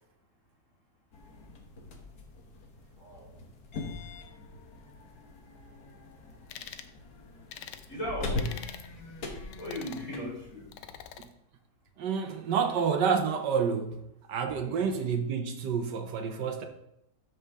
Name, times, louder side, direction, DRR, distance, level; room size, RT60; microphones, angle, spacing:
sound 1, 1.1-11.1, left 3 dB, 60° left, 1.6 m, -41 dB
voice 1, 3.0-3.3 7.9-8.5 9.6-10.6 14.6-15.0, equal, 45° left, 4.5 m, -38 dB
sound 2, 6.5-6.9 7.5-7.9 8.4-8.9 9.5-10.1 10.7-11.3, left 9 dB, 80° left, 1.3 m, -44 dB
voice 2, 12.0-14.0 14.3-16.7, right 6 dB, 75° right, 1.4 m, -29 dB
12.5 x 5.3 x 3.5 m
omnidirectional pair, 1.9 m